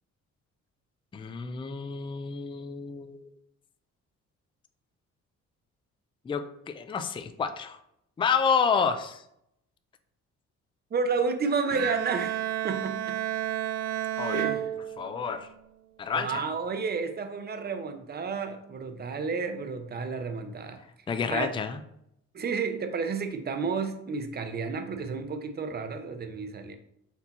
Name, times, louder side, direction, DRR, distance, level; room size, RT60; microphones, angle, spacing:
voice 1, 1.1-3.3 6.2-7.8 8.2-9.2 14.2-14.5 15.0-15.5 16.0-16.4 21.1-21.8, left 6 dB, 15° left, 9 dB, 0.3 m, -29 dB
voice 2, 10.9-12.4 12.6-13.2 14.3-14.6 16.1-20.8 21.3-21.5 22.3-26.8, right 5 dB, 35° right, 7 dB, 0.6 m, -31 dB
Bowed string instrument, 11.7-15.4, right 12 dB, 85° right, 0.5 m, -31 dB
4.4 x 2.8 x 4.0 m, 0.77 s
cardioid pair, 90°, 30 cm